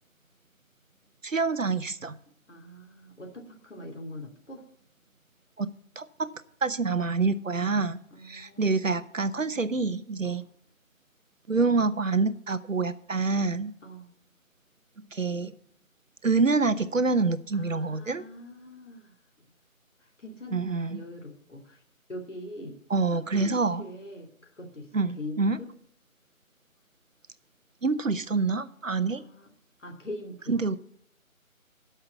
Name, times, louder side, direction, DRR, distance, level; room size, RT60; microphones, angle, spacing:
voice 1, 1.2-2.1 5.6-5.7 6.0-6.3 6.6-8.0 8.2-10.4 11.5-13.7 15.1-15.5 16.2-18.2 20.5-21.0 22.9-23.8 24.9-25.6 27.8-29.2 30.5-30.8, right 4 dB, 65° right, 13 dB, 0.8 m, -26 dB
voice 2, 2.5-4.6 8.1-8.9 10.2-10.5 13.8-14.1 17.5-19.5 20.0-21.8 22.1-22.8 23.1-25.7 29.1-29.5 29.8-30.6, left 1 dB, 60° left, 1 dB, 2.8 m, -43 dB
13.0 x 5.7 x 7.2 m, 0.68 s
figure-of-eight pair, 160°, 42 cm